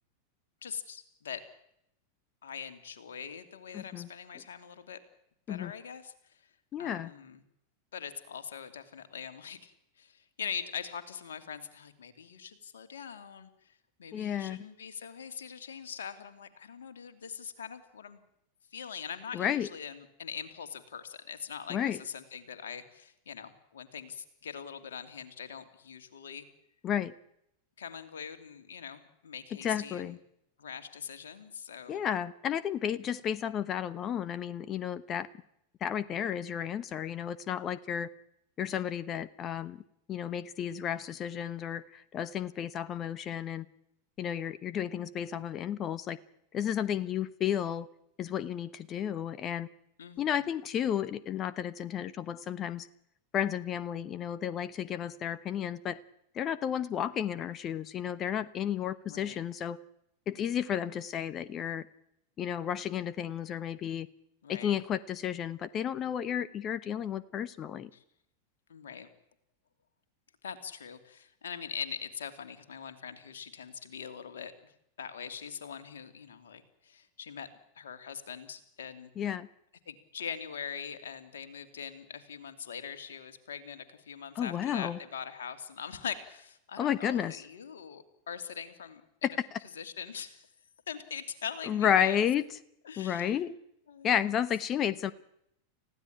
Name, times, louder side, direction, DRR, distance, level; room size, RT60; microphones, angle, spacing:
voice 1, 0.6-1.5 2.4-5.0 5.5-6.5 6.8-7.4 7.9-18.2 18.7-26.5 27.8-30.2 30.6-32.0 50.0-50.3 59.1-59.4 64.4-64.8 67.9-68.0 68.7-69.1 70.4-77.5 77.7-79.1 79.9-89.0 89.8-90.5 90.9-92.2 92.8-93.4 93.9-94.1, left 7 dB, 65° left, 9 dB, 2.8 m, -42 dB
voice 2, 3.7-4.1 5.5-5.7 6.7-7.1 14.1-14.7 19.3-19.7 21.7-22.0 26.8-27.1 29.6-30.2 31.9-35.3 35.8-38.1 38.6-39.8 40.1-43.7 44.2-46.2 46.5-47.9 48.2-49.7 50.2-52.9 53.3-56.0 56.3-59.8 60.3-61.9 62.4-64.1 64.5-67.9 79.2-79.5 84.3-85.0 86.8-87.4 91.7-92.4 93.0-93.5 94.0-95.1, left 9 dB, 30° left, 17 dB, 1.0 m, -32 dB
30.0 x 16.0 x 8.9 m, 0.78 s
figure-of-eight pair, 90°, 0 cm